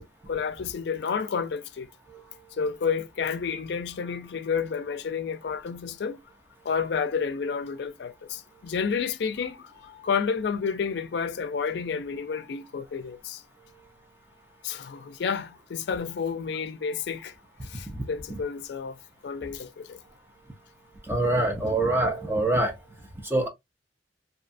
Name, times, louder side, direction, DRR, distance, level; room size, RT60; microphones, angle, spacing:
voice 1, 0.3-1.9 2.5-6.2 6.6-9.7 10.0-13.4 14.6-17.3 17.6-19.0 19.2-20.0, left 6 dB, 65° left, 0.4 m, -30 dB
voice 2, 21.0-22.8 23.2-23.5, right 2 dB, 15° right, 0.4 m, -24 dB
2.7 x 2.1 x 2.5 m
head